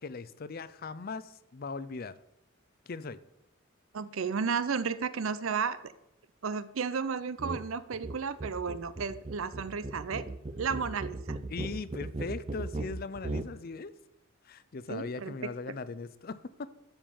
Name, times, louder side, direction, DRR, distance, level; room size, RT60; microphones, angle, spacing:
voice 1, 0.0-2.2 2.9-3.2 11.5-13.9 14.4-16.7, left 4 dB, 45° left, 16 dB, 0.5 m, -39 dB
voice 2, 3.9-5.9 6.4-10.3 10.6-11.4 14.9-15.3, right 5 dB, 75° right, 14 dB, 0.6 m, -33 dB
sound 1, 7.4-7.6 7.9-13.5, right 2 dB, 30° right, 0.5 m, -38 dB
12.5 x 5.3 x 7.0 m, 0.84 s
head